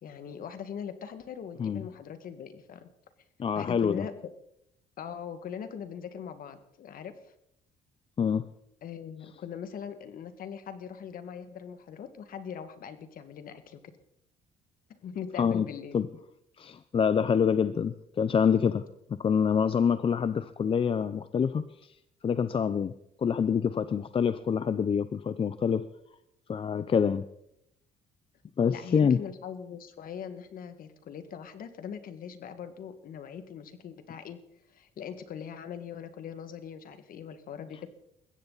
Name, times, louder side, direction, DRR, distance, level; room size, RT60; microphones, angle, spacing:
voice 1, 0.0-2.9 3.6-4.1 5.0-7.3 8.8-13.8 14.9-16.0 28.7-34.4 34.7-37.9, left 8 dB, 55° left, 10 dB, 1.9 m, -41 dB
voice 2, 3.4-4.0 8.2-8.5 15.4-15.7 15.9-16.1 16.6-18.8 19.1-21.9 22.2-22.9 23.2-25.9 26.5-27.2 28.6-29.2, left 7 dB, 30° left, 13 dB, 0.6 m, -26 dB
21.5 x 16.0 x 4.1 m, 0.78 s
cardioid pair, 110°, 17 cm